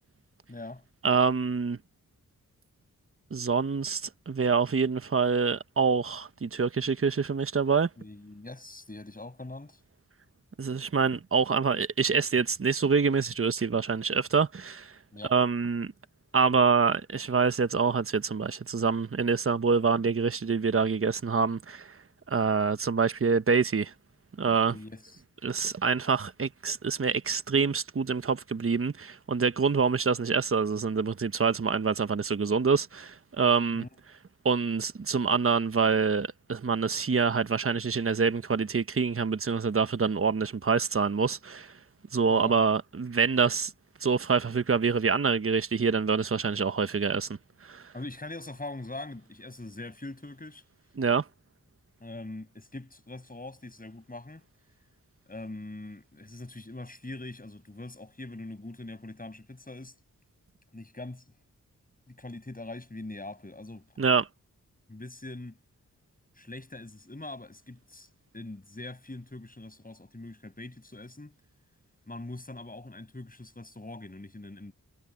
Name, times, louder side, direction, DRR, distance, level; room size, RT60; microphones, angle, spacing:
voice 1, 0.5-0.8 8.0-9.8 15.1-15.3 24.7-25.2 33.7-33.9 42.3-42.6 47.9-50.6 52.0-54.4 55.3-60.0 60.7-61.3 62.1-63.9 64.9-65.6 66.3-71.3 72.1-74.7, left 2 dB, 25° left, 6.6 m, -42 dB
voice 2, 1.0-1.8 3.3-7.9 10.6-14.9 15.3-15.9 16.3-22.0 22.3-23.9 24.4-24.8 25.4-33.8 34.4-41.7 42.1-43.7 44.0-47.3 47.6-47.9 51.0-51.2 64.0-64.3, right 5 dB, 40° right, 1.1 m, -26 dB
cardioid pair, 50°, 32 cm